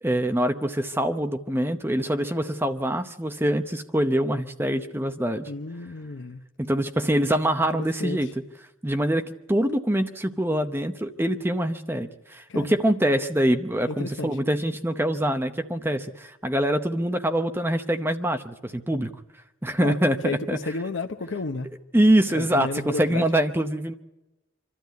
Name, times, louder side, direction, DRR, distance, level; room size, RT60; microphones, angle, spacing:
voice 1, 0.0-5.5 6.6-8.3 8.8-19.1 19.6-20.7 21.9-23.9, right 1 dB, 10° right, 7 dB, 0.7 m, -24 dB
voice 2, 5.5-6.4 7.7-8.3 12.5-12.8 13.9-14.4 19.8-20.0 20.2-21.7 22.3-23.2, left 3 dB, 65° left, 6 dB, 0.8 m, -32 dB
25.5 x 13.0 x 9.3 m, 1.0 s
head